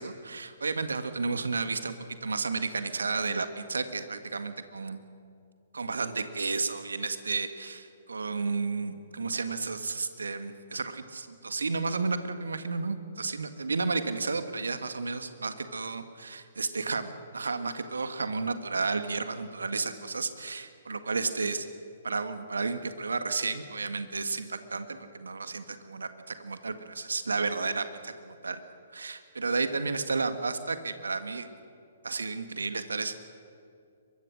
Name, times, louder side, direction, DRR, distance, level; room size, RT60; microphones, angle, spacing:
voice 1, 0.0-1.9 2.2-5.0 5.7-21.7 22.0-28.6 28.9-31.5 32.0-33.1, right 4 dB, 75° right, 9 dB, 1.7 m, -32 dB
23.5 x 22.5 x 6.5 m, 2.4 s
figure-of-eight pair, 120°, 0 cm